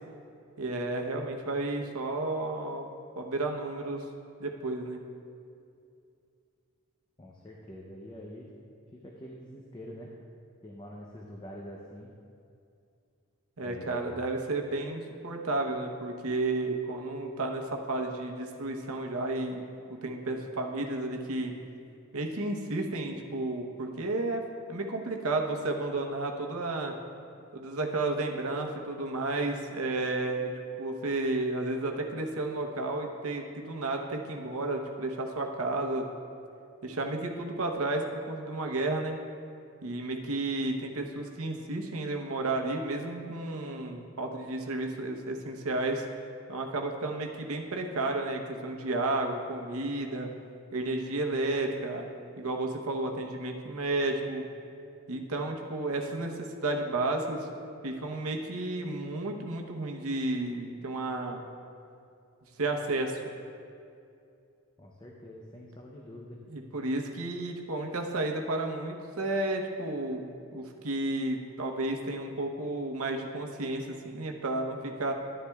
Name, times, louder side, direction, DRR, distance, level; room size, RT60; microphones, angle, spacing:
voice 1, 0.6-2.9 3.2-4.1 4.4-5.0 13.6-19.6 19.9-21.6 22.1-24.4 24.7-26.9 27.5-30.5 30.8-36.0 36.8-39.2 39.8-46.0 46.5-50.3 50.7-52.1 52.4-54.5 55.1-57.5 57.8-61.4 62.6-63.2 66.5-75.1, right 2 dB, 80° right, 2 dB, 0.9 m, -32 dB
voice 2, 7.2-8.5 8.9-10.1 10.6-12.1 13.6-14.3 64.8-66.4, equal, 20° left, -2 dB, 0.6 m, -45 dB
11.0 x 10.0 x 2.3 m, 2.5 s
head